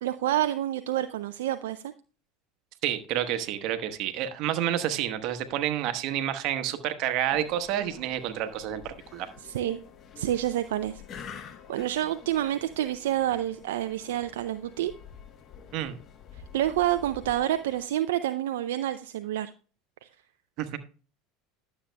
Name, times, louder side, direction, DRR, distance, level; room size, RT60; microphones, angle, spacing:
voice 1, 0.0-1.9 9.4-9.8 10.2-11.0 11.3-14.9 16.3-19.5 20.0-20.1, right 12 dB, 80° right, 10 dB, 0.4 m, -28 dB
voice 2, 2.8-9.3 15.7-16.0 20.6-20.8, right 11 dB, 60° right, 9 dB, 1.1 m, -29 dB
sound 1, 7.3-17.9, left 7 dB, 45° left, 0.9 m, -48 dB
11.5 x 7.3 x 2.2 m, 0.37 s
hypercardioid pair, 85°, 0 cm